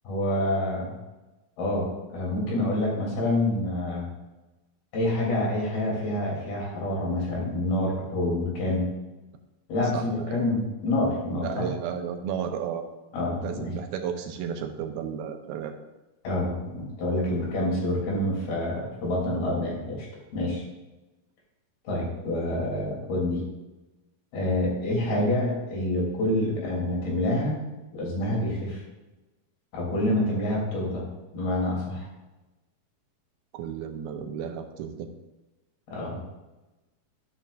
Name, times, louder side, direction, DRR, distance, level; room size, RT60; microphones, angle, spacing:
voice 1, 0.1-0.9 1.6-4.1 4.9-8.8 9.7-11.7 13.1-13.7 16.2-20.1 20.3-20.6 21.9-23.4 24.3-27.6 27.9-28.8 29.7-31.0 31.3-32.1 35.9-36.2, left 1 dB, 80° left, -4 dB, 5.3 m, -27 dB
voice 2, 9.9-10.5 11.3-12.8 13.4-15.7 33.5-35.1, right 8 dB, 85° right, 6 dB, 2.8 m, -33 dB
12.0 x 11.0 x 2.6 m, 1.1 s
omnidirectional pair, 4.3 m